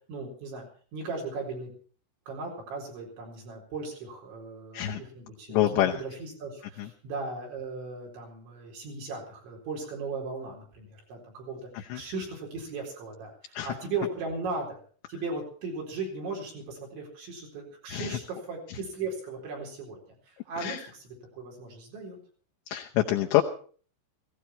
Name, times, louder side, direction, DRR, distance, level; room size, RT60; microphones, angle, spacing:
voice 1, 0.1-0.7 0.9-1.7 2.3-14.8 15.1-20.0 20.3-21.0 21.3-22.2, right 3 dB, 65° right, -2 dB, 6.5 m, -37 dB
voice 2, 5.5-6.0 6.8-6.9 11.7-12.0 13.5-13.7 17.9-18.2 20.6-20.8 22.7-23.4, left 14 dB, 75° left, 1 dB, 2.9 m, -26 dB
17.5 x 16.5 x 4.4 m, 0.43 s
omnidirectional pair, 5.7 m